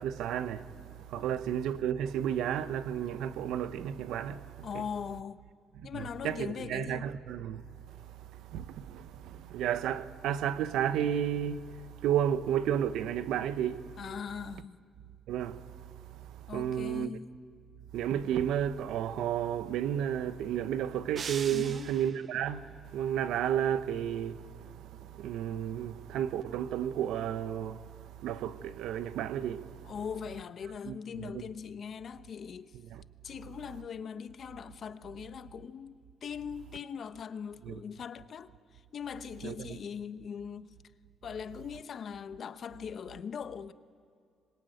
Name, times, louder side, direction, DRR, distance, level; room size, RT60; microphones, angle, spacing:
voice 1, 0.0-4.8 5.9-7.6 8.0-8.1 8.5-13.9 15.3-15.6 16.3-17.2 17.9-22.7 22.9-27.9 28.2-29.9 30.9-31.4 32.9-33.0 37.6-37.8 39.4-39.8, right 10 dB, 85° right, 0.9 m, -32 dB
voice 2, 4.6-5.4 5.8-7.1 14.0-14.8 16.5-17.3 21.5-21.9 29.8-32.8 33.2-40.7 41.2-43.7, left 7 dB, 55° left, 1.0 m, -41 dB
sound 1, 21.2-22.4, right 6 dB, 45° right, 0.6 m, -41 dB
25.5 x 22.0 x 9.2 m
cardioid pair, 90°, 0 cm